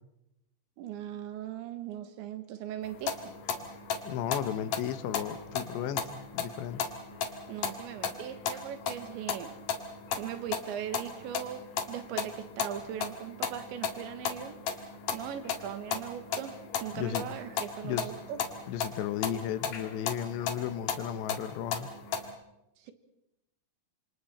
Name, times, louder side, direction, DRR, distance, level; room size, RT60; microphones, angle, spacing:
voice 1, 0.8-3.2 7.5-9.5 10.2-14.6 15.1-18.4 22.8-22.9, right 10 dB, 85° right, 9 dB, 3.7 m, -39 dB
sound 1, 2.8-22.3, left 6 dB, 55° left, 2.8 m, -36 dB
voice 2, 4.0-6.8 16.9-17.3 17.8-18.1 18.7-21.9, left 10 dB, 80° left, 11 dB, 3.2 m, -34 dB
27.5 x 27.0 x 4.3 m, 0.87 s
omnidirectional pair, 5.1 m